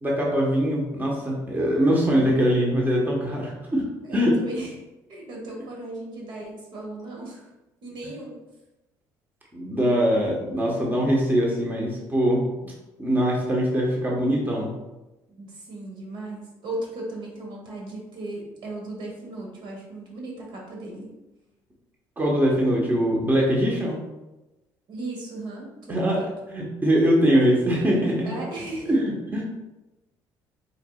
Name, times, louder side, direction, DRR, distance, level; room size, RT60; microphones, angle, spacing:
voice 1, 0.0-4.3 9.5-12.7 13.0-14.7 22.2-24.0 25.9-28.3 28.9-29.4, equal, 20° right, -3 dB, 1.3 m, -22 dB
voice 2, 4.0-4.7 5.1-7.5 7.8-8.4 15.3-21.1 24.9-26.3 28.2-28.9, right 2 dB, 60° right, -2 dB, 1.4 m, -36 dB
4.5 x 4.1 x 2.4 m, 1.0 s
supercardioid pair, 70°, 9 cm